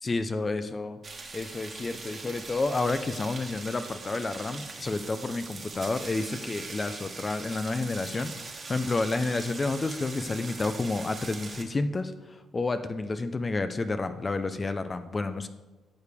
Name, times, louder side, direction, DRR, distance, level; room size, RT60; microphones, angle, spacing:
voice 1, 0.0-1.0 1.3-15.5, left 3 dB, 30° left, 10 dB, 0.5 m, -30 dB
sound 1, 1.0-11.6, right 3 dB, 40° right, 1.4 m, -41 dB
11.5 x 6.6 x 3.5 m, 1.2 s
cardioid pair, 90°, 0 cm